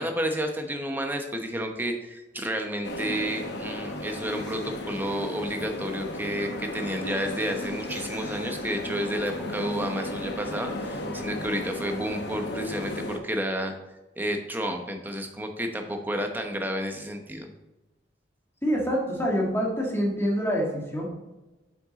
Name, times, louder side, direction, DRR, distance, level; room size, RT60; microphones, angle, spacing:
voice 1, 0.0-13.7 14.2-17.5, equal, 10° right, 4 dB, 0.8 m, -31 dB
sound 1, 2.8-13.2, left 1 dB, 60° left, 1.0 m, -35 dB
voice 2, 18.6-21.1, equal, 15° left, -2 dB, 1.7 m, -26 dB
7.8 x 6.0 x 3.9 m, 1.1 s
head